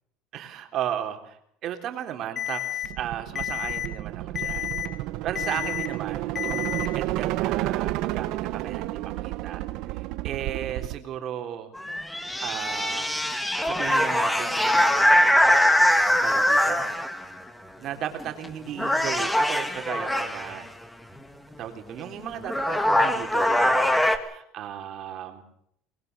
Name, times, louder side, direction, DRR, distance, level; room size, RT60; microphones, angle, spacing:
voice 1, 0.3-1.4 1.6-4.8 5.2-11.7 12.4-13.3 13.6-15.8 16.2-16.9 17.8-20.6 21.6-25.4, right 10 dB, 45° right, 5 dB, 3.4 m, -35 dB
Alarm, 2.4-2.9 3.4-3.9 4.4-4.9 5.4-5.9 6.4-6.9, left 12 dB, 30° left, 1.5 m, -30 dB
sound 1, 2.8-11.0, right 16 dB, 65° right, 1.2 m, -31 dB
sound 2, 11.8-17.3 18.2-18.5 18.8-20.6 22.0-22.1 22.4-24.2, left 1 dB, 5° left, 1.8 m, -22 dB
24.0 x 21.0 x 6.8 m, 0.70 s
cardioid pair, 150°, 0 cm